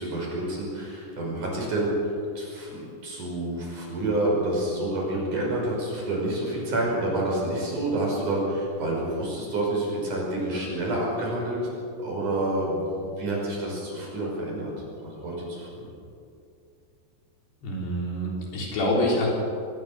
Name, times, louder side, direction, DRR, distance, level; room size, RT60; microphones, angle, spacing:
voice 1, 0.0-11.7 12.0-14.7 15.0-15.9, right 1 dB, 50° right, -2 dB, 6.9 m, -28 dB
voice 2, 17.6-19.3, left 1 dB, 75° left, -2 dB, 6.2 m, -26 dB
23.5 x 19.5 x 6.6 m, 2.5 s
omnidirectional pair, 4.8 m